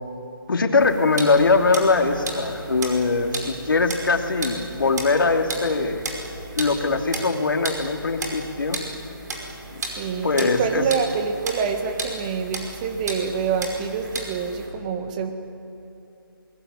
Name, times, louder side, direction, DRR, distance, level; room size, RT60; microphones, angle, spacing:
voice 1, 0.5-6.0 6.5-8.8 9.7-9.8 10.2-10.8, left 3 dB, 60° left, 4 dB, 2.9 m, -21 dB
sound 1, 0.8-14.7, right 2 dB, 50° right, 5.3 m, -35 dB
voice 2, 10.0-15.3, right 6 dB, 20° right, 6 dB, 1.6 m, -26 dB
24.5 x 20.5 x 9.8 m, 2.9 s
figure-of-eight pair, 165°, 12 cm